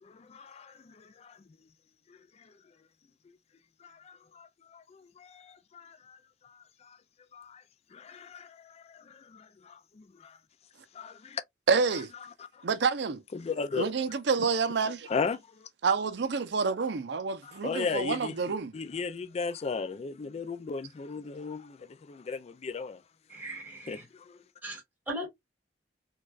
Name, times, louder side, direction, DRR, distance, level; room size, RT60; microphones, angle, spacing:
voice 1, 0.0-1.4 2.1-2.5 3.8-7.0 7.3-7.6 7.9-10.4 10.9-11.4 11.9-12.6 13.3-13.9 14.4-14.5 15.1-15.7 17.4-18.3 18.7-23.0 23.9-24.4, left 5 dB, 35° left, 0.3 m, -37 dB
voice 2, 11.7-12.1 12.6-13.2 13.8-15.1 15.8-18.7, right 5 dB, 65° right, 0.5 m, -28 dB
voice 3, 23.3-24.0 24.6-25.3, equal, 10° right, 1.6 m, -39 dB
4.4 x 2.3 x 2.4 m
head